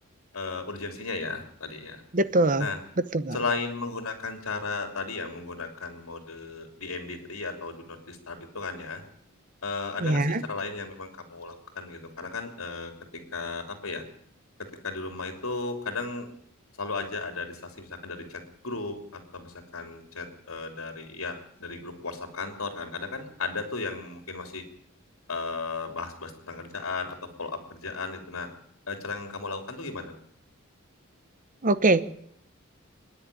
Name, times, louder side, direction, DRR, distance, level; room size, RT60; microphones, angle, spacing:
voice 1, 0.3-2.0 2.6-2.8 3.3-9.0 9.6-14.0 14.8-16.3 16.8-24.6 25.3-28.5 28.9-30.1, left 3 dB, 85° left, 5 dB, 3.0 m, -35 dB
voice 2, 2.1-2.7 3.1-3.4 10.0-10.4 31.6-32.1, right 2 dB, 40° right, 13 dB, 1.0 m, -22 dB
25.0 x 10.5 x 9.9 m, 0.69 s
head